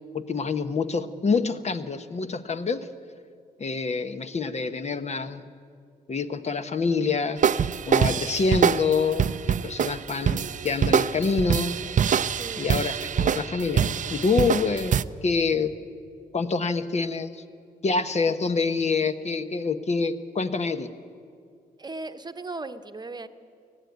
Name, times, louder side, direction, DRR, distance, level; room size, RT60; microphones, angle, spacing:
voice 1, 0.1-2.9 3.6-5.4 6.1-11.8 12.6-15.7 16.3-17.4 17.8-20.9, left 4 dB, 45° left, 10 dB, 1.0 m, -26 dB
sound 1, 7.4-15.0, right 8 dB, 50° right, 0.5 m, -24 dB
voice 2, 12.3-12.7 21.8-23.3, right 3 dB, 25° right, 9 dB, 1.0 m, -37 dB
20.0 x 13.5 x 9.4 m, 2.3 s
cardioid pair, 80°, 16 cm